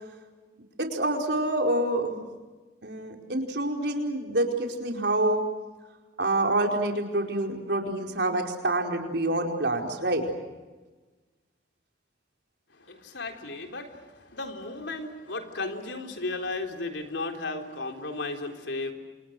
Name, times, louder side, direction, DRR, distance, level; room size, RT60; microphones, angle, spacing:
voice 1, 0.8-2.2 2.8-5.4 6.2-10.3, right 2 dB, 65° right, 2 dB, 4.8 m, -27 dB
voice 2, 12.8-18.9, left 3 dB, 80° left, 4 dB, 3.8 m, -35 dB
29.0 x 28.0 x 6.4 m, 1.2 s
head